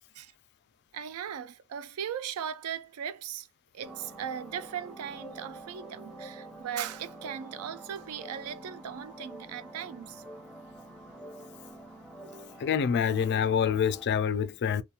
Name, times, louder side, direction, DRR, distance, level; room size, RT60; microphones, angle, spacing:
voice 1, 0.9-3.5 3.7-10.2, right 8 dB, 85° right, 0.3 m, -38 dB
sound 1, 3.8-14.1, right 1 dB, ahead, 0.6 m, -47 dB
voice 2, 12.6-14.8, left 7 dB, 50° left, 0.3 m, -26 dB
2.8 x 2.2 x 2.3 m
head